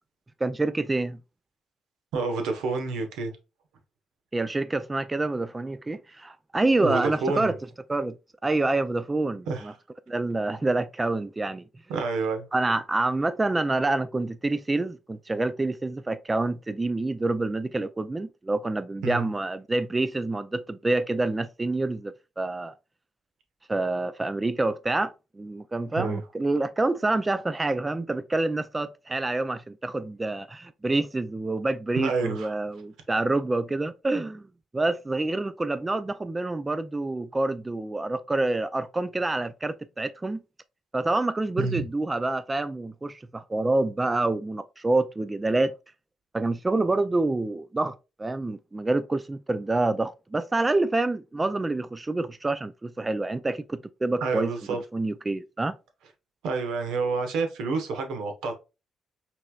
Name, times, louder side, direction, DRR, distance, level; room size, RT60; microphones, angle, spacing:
voice 1, 0.4-1.2 4.3-7.6 7.9-8.2 8.4-9.7 10.1-11.6 12.5-22.7 23.7-34.5 34.7-40.4 40.9-45.7 46.3-54.5 54.9-55.7, right 2 dB, 20° right, 0.3 m, -27 dB
voice 2, 2.1-3.3 6.8-7.5 9.5-9.7 11.9-12.5 19.0-19.3 25.9-26.2 32.0-32.5 41.6-41.8 54.2-54.8 56.4-58.5, right 4 dB, 90° right, 1.2 m, -28 dB
5.8 x 3.2 x 2.4 m
cardioid pair, 90°, 0 cm